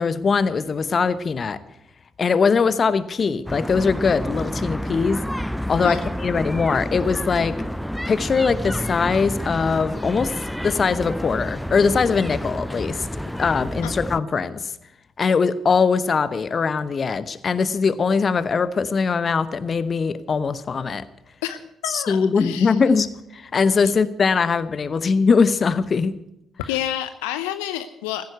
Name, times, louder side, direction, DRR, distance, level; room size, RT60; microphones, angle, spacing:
voice 1, 0.0-1.6 2.2-5.2 5.7-7.6 8.1-10.3 10.6-13.1 13.4-14.7 15.2-21.0 21.9-26.2, left 5 dB, 45° left, 15 dB, 0.9 m, -21 dB
sound 1, 3.5-14.2, equal, 5° left, 0.6 m, -29 dB
voice 2, 21.4-22.8 26.7-28.3, left 12 dB, 75° left, 11 dB, 0.6 m, -29 dB
15.0 x 9.5 x 8.0 m, 0.80 s
hypercardioid pair, 45°, 0 cm